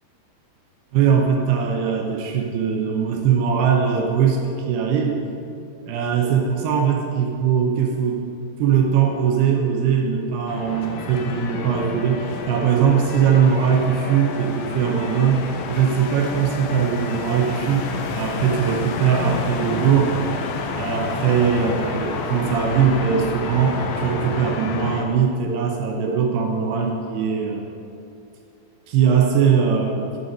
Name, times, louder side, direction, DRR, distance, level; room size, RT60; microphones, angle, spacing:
voice 1, 0.9-5.2 5.9-8.2 8.6-17.9 18.2-20.2 20.8-27.7 28.9-30.1, right 7 dB, 75° right, 1 dB, 2.6 m, -20 dB
sound 1, 10.5-25.0, left 4 dB, 80° left, 2.3 m, -29 dB
9.2 x 6.6 x 5.3 m, 2.7 s
omnidirectional pair, 5.1 m